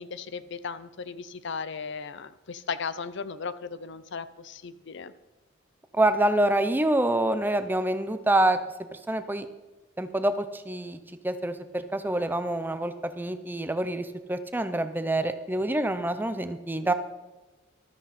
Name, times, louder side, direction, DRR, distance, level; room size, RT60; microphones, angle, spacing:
voice 1, 0.0-5.1, left 5 dB, 60° left, 15 dB, 0.6 m, -36 dB
voice 2, 6.0-8.6 9.1-9.4 10.0-11.0 11.2-16.9, right 1 dB, 10° right, 10 dB, 0.6 m, -26 dB
13.5 x 13.0 x 4.2 m, 1.1 s
head